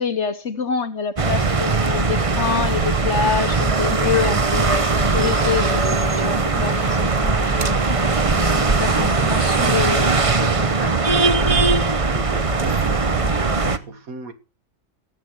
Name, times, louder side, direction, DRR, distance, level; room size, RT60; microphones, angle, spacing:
voice 1, 0.0-5.8 6.2-7.5 8.8-10.1 10.4-10.6, left 6 dB, 50° left, 1.3 m, -26 dB
sound 1, 1.2-13.8, right 3 dB, 30° right, 0.8 m, -20 dB
Alarm, 2.5-11.8, left 3 dB, 80° left, 3.0 m, -36 dB
voice 2, 8.9-9.6 10.4-14.3, right 3 dB, 65° right, 2.4 m, -33 dB
17.0 x 9.1 x 6.4 m
omnidirectional pair, 1.6 m